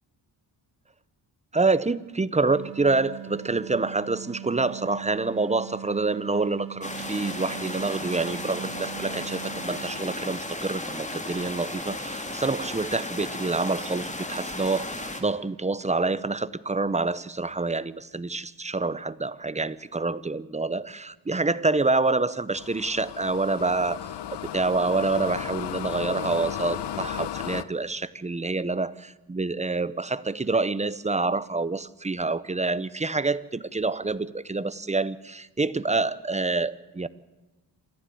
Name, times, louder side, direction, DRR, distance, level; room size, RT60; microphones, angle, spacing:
voice 1, 1.5-24.1 24.5-37.1, right 3 dB, 15° right, 17 dB, 0.8 m, -27 dB
sound 1, 2.5-10.6, right 10 dB, 75° right, 1.1 m, -41 dB
sound 2, 6.8-15.2, left 2 dB, 15° left, 2.7 m, -35 dB
sound 3, 22.5-27.6, left 11 dB, 70° left, 1.1 m, -34 dB
27.5 x 14.0 x 8.6 m, 1.1 s
cardioid pair, 115°, 42 cm